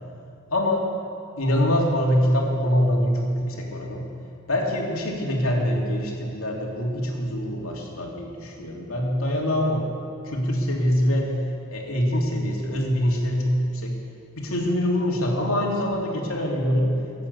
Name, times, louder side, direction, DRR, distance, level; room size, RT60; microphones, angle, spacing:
voice 1, 0.5-0.9 1.4-4.1 4.5-9.8 10.2-11.3 11.7-14.0 14.3-16.9, equal, 75° left, -1 dB, 2.8 m, -24 dB
22.5 x 8.7 x 6.9 m, 2.5 s
head